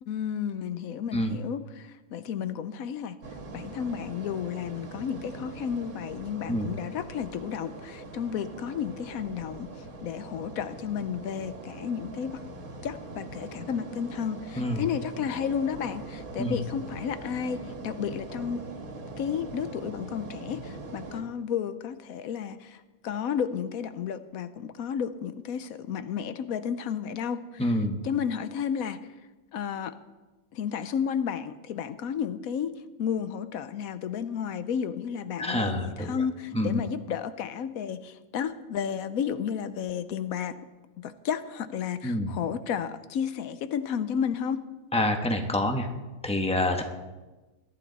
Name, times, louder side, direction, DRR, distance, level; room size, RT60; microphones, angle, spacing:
voice 1, 0.0-3.2 3.5-12.4 12.8-18.6 19.2-27.8 28.0-29.0 29.5-30.0 30.5-40.5 41.0-44.6, left 7 dB, 80° left, 12 dB, 1.1 m, -32 dB
sound 1, 3.2-21.2, right 2 dB, 85° right, 2.0 m, -42 dB
voice 2, 27.6-28.0 35.4-36.2 36.5-36.8 42.0-42.4 44.9-45.9 46.2-46.8, left 1 dB, 5° left, 4 dB, 1.1 m, -27 dB
21.0 x 11.5 x 4.1 m, 1.2 s
omnidirectional pair, 1.5 m